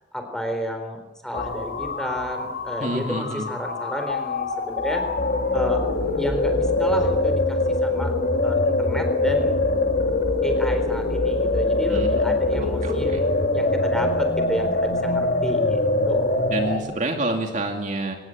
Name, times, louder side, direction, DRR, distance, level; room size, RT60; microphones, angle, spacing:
voice 1, 0.1-5.0 5.5-5.8 6.2-8.1 8.4-9.6 10.4-15.8 16.1-16.4, left 1 dB, 5° left, 5 dB, 4.0 m, -31 dB
sound 1, 1.3-16.8, left 2 dB, 50° left, 2.5 m, -23 dB
voice 2, 2.8-3.5 11.9-12.2 12.8-13.2 16.5-18.1, right 2 dB, 40° right, 3 dB, 2.5 m, -28 dB
24.5 x 19.0 x 9.1 m, 1.1 s
head